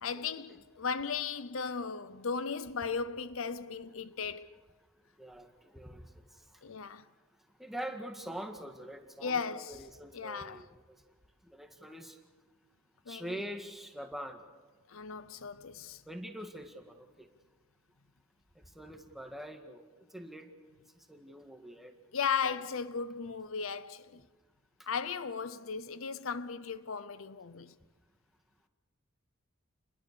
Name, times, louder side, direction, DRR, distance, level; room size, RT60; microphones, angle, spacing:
voice 1, 0.0-4.6 6.6-7.0 9.2-9.8 10.1-10.6 13.1-13.4 14.9-16.0 22.1-24.2 24.9-27.7, left 6 dB, 75° left, 0.7 m, -36 dB
voice 2, 5.2-6.6 7.6-11.0 11.4-12.2 13.1-14.4 16.1-17.3 18.6-19.8 20.1-20.5 21.0-21.9 22.4-22.6 24.8-24.9, equal, ahead, 1.8 m, -44 dB
29.0 x 21.0 x 6.9 m
head